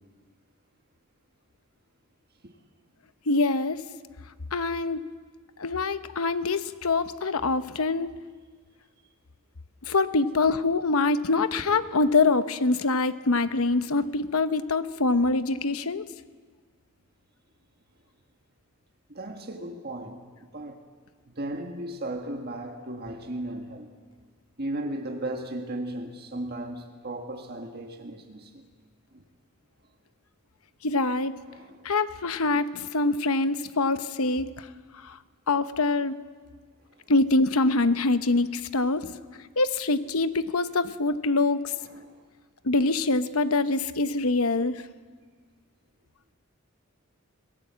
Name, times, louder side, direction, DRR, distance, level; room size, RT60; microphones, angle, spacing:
voice 1, 3.3-3.8 4.5-5.0 5.6-8.1 9.8-16.0 30.8-31.3 31.8-34.7 35.0-35.2 35.5-36.1 37.1-39.1 39.6-41.7 42.6-44.8, left 3 dB, 80° left, 0.9 m, -24 dB
voice 2, 19.1-20.2 20.5-20.8 21.3-23.9 24.6-28.7 29.1-29.2 31.5-31.9 37.0-37.1 41.8-42.2 44.6-44.7, right 1 dB, 45° right, 1.7 m, -36 dB
25.5 x 17.5 x 7.5 m
head